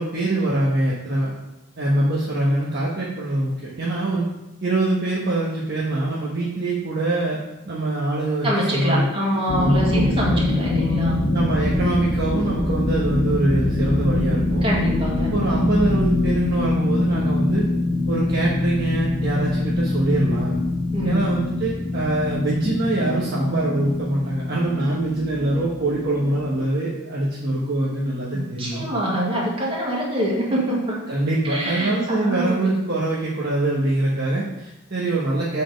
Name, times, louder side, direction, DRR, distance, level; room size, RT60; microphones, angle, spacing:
voice 1, 0.0-1.3 1.8-4.3 4.6-9.0 9.6-10.3 11.3-14.6 15.3-17.6 18.1-20.5 21.0-28.8 31.1-35.6, right 2 dB, 50° right, -6 dB, 1.2 m, -24 dB
voice 2, 8.4-11.2 14.6-15.3 20.9-21.3 28.3-31.0 31.5-32.7, equal, 25° right, -4 dB, 1.8 m, -24 dB
sound 1, 9.5-26.6, left 2 dB, 50° left, 1.0 m, -24 dB
7.5 x 4.2 x 5.2 m, 0.94 s
head